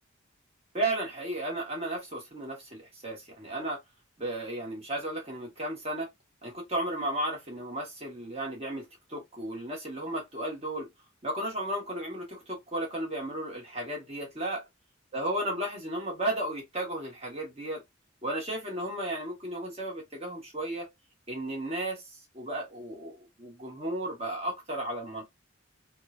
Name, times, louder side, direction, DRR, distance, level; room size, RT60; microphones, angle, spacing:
voice 1, 0.7-3.8 4.2-6.1 6.4-10.9 11.2-14.6 15.1-17.8 18.2-20.9 21.3-22.0 22.3-25.2, right 1 dB, 30° right, 1.1 m, -34 dB
3.1 x 2.2 x 2.4 m
head